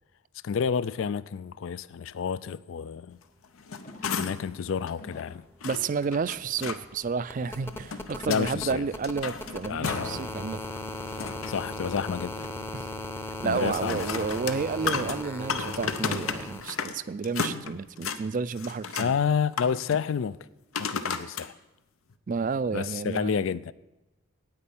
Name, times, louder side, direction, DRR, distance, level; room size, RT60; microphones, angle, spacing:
voice 1, 0.4-3.2 4.2-5.4 8.3-8.9 9.7-10.1 11.5-12.5 13.4-14.2 19.0-20.4 20.8-21.5 22.7-23.7, left 6 dB, 65° left, 0.4 m, -29 dB
sound 1, 3.4-4.6 4.9-5.0 5.6-6.8 7.6-8.5 8.9-10.2 10.6-11.6 13.6-17.0 17.2-18.2 18.6-19.1 19.5-20.0 20.7-21.5 22.1-22.2, left 6 dB, 80° left, 0.8 m, -34 dB
sound 2, 3.8-4.3 5.0-5.4 6.1-6.6 7.3-7.7 8.4-8.8 9.9-10.4 11.2-11.6 12.3-12.8 13.6-13.9 14.7-15.1, left 1 dB, 35° left, 1.2 m, -49 dB
sound 3, 5.4-5.5 5.7-16.6 18.0-18.1, left 2 dB, 10° left, 0.7 m, -38 dB
voice 2, 5.6-10.6 12.7-12.9 13.4-19.1 22.3-23.5, right 5 dB, 40° right, 0.3 m, -31 dB
9.7 x 9.1 x 8.5 m
head